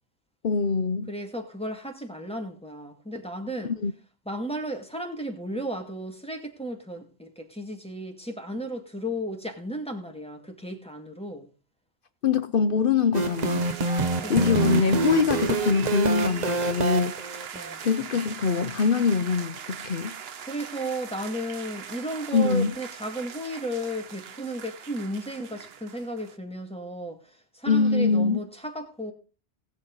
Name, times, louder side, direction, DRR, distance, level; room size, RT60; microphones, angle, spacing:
voice 1, 0.4-1.1 3.6-3.9 12.2-13.6 14.3-17.2 17.8-20.2 22.3-22.7 27.7-28.4, left 5 dB, 55° left, 0.9 m, -23 dB
voice 2, 1.1-3.7 4.3-11.5 13.9-14.7 17.5-17.8 20.4-29.1, right 1 dB, 5° left, 2.1 m, -34 dB
sound 1, 13.1-17.7, right 3 dB, 40° right, 1.0 m, -27 dB
sound 2, 13.1-26.4, right 7 dB, 65° right, 1.1 m, -40 dB
19.5 x 7.4 x 3.9 m
omnidirectional pair, 1.1 m